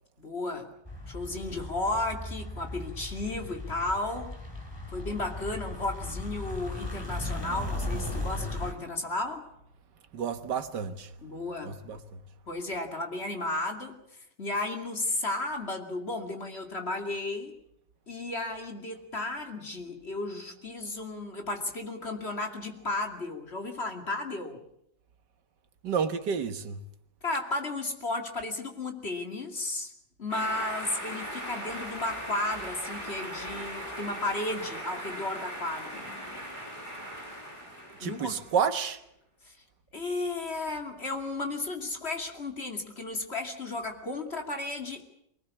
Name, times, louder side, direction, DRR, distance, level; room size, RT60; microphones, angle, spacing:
voice 1, 0.2-0.7 1.1-4.3 4.9-9.4 11.2-12.0 12.5-17.6 18.1-24.6 27.2-29.9 30.2-36.1 38.0-38.4 39.4-39.6 39.9-45.0, left 2 dB, 35° left, 2.7 m, -34 dB
sound 1, 0.8-8.7, left 2 dB, 15° left, 3.1 m, -37 dB
voice 2, 10.1-11.1 11.6-12.0 25.8-26.8 38.0-39.0, right 6 dB, 70° right, 1.9 m, -30 dB
sound 2, 30.3-38.6, equal, 15° right, 6.7 m, -39 dB
24.0 x 19.0 x 8.4 m
omnidirectional pair, 2.0 m